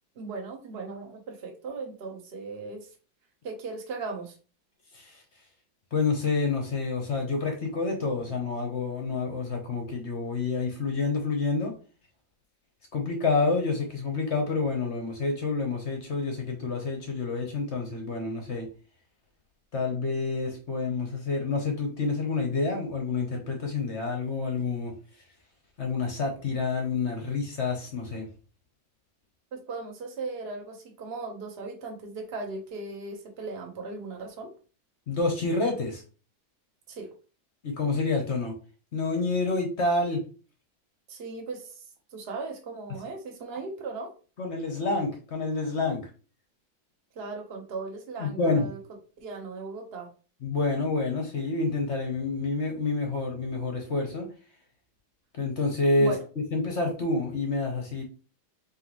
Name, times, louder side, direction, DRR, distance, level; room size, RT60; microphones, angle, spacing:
voice 1, 0.2-2.9 3.4-4.3 29.5-34.5 36.9-37.1 41.1-41.8 42.1-44.1 47.2-48.8 49.2-50.1 56.0-56.2, right 3 dB, 45° right, 2 dB, 0.8 m, -37 dB
voice 2, 5.9-11.7 12.9-18.7 19.7-24.9 25.8-28.3 35.1-36.0 37.6-38.5 38.9-40.2 44.4-46.1 48.2-48.7 50.4-54.3 55.3-56.1 56.5-58.0, left 3 dB, 50° left, 2 dB, 0.8 m, -28 dB
4.8 x 3.3 x 3.0 m, 0.36 s
omnidirectional pair, 2.2 m